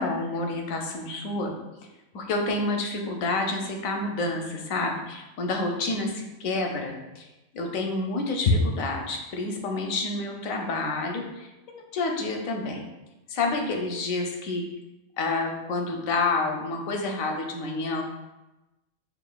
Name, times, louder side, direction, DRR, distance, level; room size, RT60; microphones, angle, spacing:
voice 1, 0.0-1.5 2.1-7.3 7.5-12.8 13.3-14.6 15.2-18.0, left 3 dB, 90° left, 2 dB, 1.0 m, -28 dB
4.9 x 2.8 x 2.2 m, 1.0 s
omnidirectional pair, 1.4 m